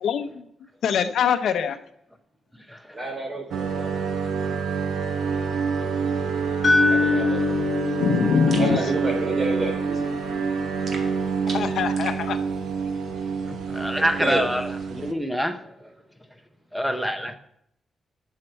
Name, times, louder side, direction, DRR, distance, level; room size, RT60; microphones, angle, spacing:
voice 1, 0.0-0.4 0.8-1.8 8.0-8.8 11.5-12.4, left 7 dB, 80° left, 10 dB, 0.7 m, -23 dB
voice 2, 2.9-3.9 6.9-7.4 8.6-10.0 14.0-14.4, right 2 dB, 30° right, 1 dB, 3.3 m, -29 dB
sound 1, 3.5-15.1, right 5 dB, 75° right, 0.9 m, -27 dB
sound 2, 6.6-10.7, left 4 dB, 30° left, 2.2 m, -25 dB
sound 3, 8.5-8.7 10.9-12.2, right 3 dB, 50° right, 2.0 m, -38 dB
voice 3, 13.7-15.6 16.7-17.3, equal, ahead, 6 dB, 0.9 m, -26 dB
12.0 x 6.6 x 4.5 m, 0.76 s
cardioid pair, 120°, 0 cm